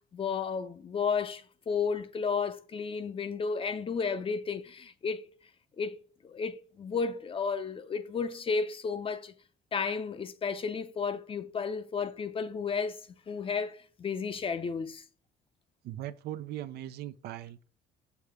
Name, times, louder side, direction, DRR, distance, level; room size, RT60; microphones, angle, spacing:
voice 1, 0.1-5.3 5.8-6.0 6.2-9.3 9.7-15.0, left 5 dB, 30° left, 0.6 m, -33 dB
voice 2, 15.8-17.7, right 13 dB, 75° right, 0.6 m, -39 dB
7.0 x 3.4 x 4.8 m
cardioid pair, 110°, 17 cm